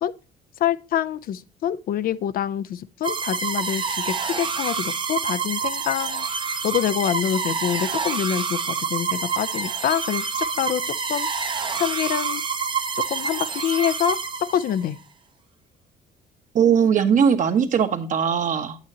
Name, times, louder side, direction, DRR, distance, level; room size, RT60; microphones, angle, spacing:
voice 1, 0.6-6.3 6.6-10.8 11.1-11.3 11.8-12.4 13.1-15.0, left 10 dB, 60° left, 0.6 m, -26 dB
sound 1, 3.0-14.9, right 5 dB, 30° right, 0.9 m, -27 dB
voice 2, 16.5-18.8, right 7 dB, 50° right, 1.4 m, -19 dB
8.9 x 8.8 x 2.8 m
cardioid pair, 110°, 17 cm